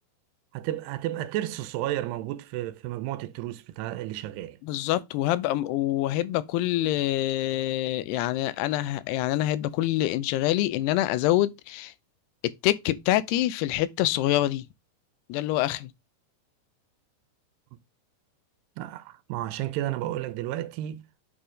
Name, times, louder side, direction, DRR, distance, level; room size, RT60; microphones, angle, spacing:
voice 1, 0.5-4.6 18.8-21.0, right 14 dB, 85° right, 2.7 m, -32 dB
voice 2, 4.6-11.9 12.4-14.6 15.3-15.9, left 14 dB, 85° left, 2.6 m, -26 dB
9.1 x 4.3 x 4.8 m
omnidirectional pair, 4.7 m